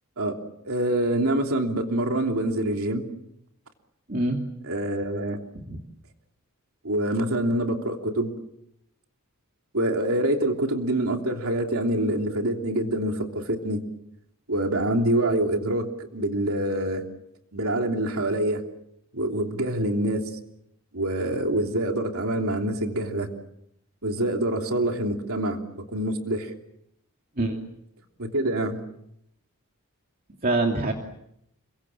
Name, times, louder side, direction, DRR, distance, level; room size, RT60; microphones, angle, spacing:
voice 1, 0.6-3.0 4.7-5.4 6.8-8.3 9.7-13.8 14.5-17.0 17.5-18.6 19.1-20.2 20.9-23.3 24.0-26.5 28.2-28.8, right 1 dB, 75° right, 3 dB, 3.1 m, -25 dB
voice 2, 30.4-30.9, right 2 dB, 40° right, 2 dB, 2.7 m, -24 dB
29.5 x 24.0 x 7.4 m, 0.76 s
head